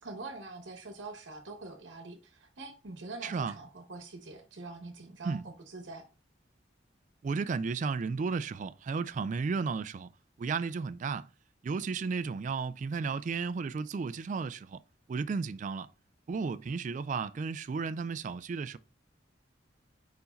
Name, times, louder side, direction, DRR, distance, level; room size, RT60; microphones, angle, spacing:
voice 1, 0.0-6.1, right 3 dB, 80° right, 1.0 m, -44 dB
voice 2, 3.2-3.5 5.2-5.4 7.2-10.1 10.4-11.3 11.6-14.8 15.1-15.9 16.3-18.8, right 5 dB, 40° right, 0.3 m, -33 dB
5.2 x 4.6 x 4.2 m
head